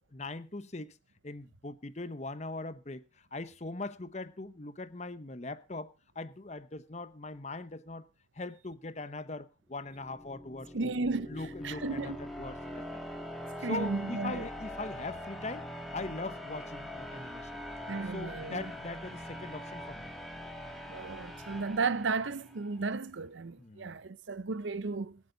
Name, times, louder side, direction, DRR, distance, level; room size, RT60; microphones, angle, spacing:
voice 1, 0.1-0.9 1.2-3.0 3.3-5.9 6.1-8.1 8.4-10.9 11.3-13.0 13.6-15.7 15.9-17.6 18.1-20.1 23.6-24.0, left 2 dB, 35° left, 0.9 m, -41 dB
sound 1, 9.8-22.7, left 1 dB, ahead, 2.4 m, -43 dB
voice 2, 10.7-12.2 13.6-14.5 17.9-18.7 20.9-25.2, right 3 dB, 90° right, 0.7 m, -34 dB
25.5 x 8.4 x 3.9 m
head